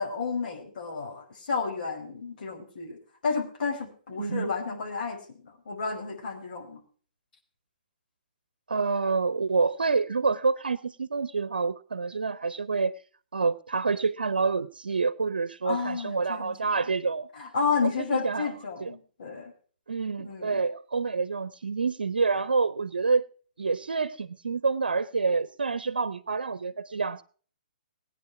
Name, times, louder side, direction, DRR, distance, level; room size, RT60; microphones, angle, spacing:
voice 1, 0.0-3.0 3.2-6.8 15.6-16.8 17.3-19.5 20.2-20.6, left 5 dB, 65° left, 2 dB, 5.2 m, -31 dB
voice 2, 4.1-4.5 8.7-13.0 13.3-17.3 17.8-18.5 18.8-18.9 19.9-23.3 23.6-27.2, right 4 dB, 85° right, 16 dB, 0.8 m, -27 dB
18.5 x 9.8 x 4.7 m, 0.43 s
hypercardioid pair, 135°, 5 cm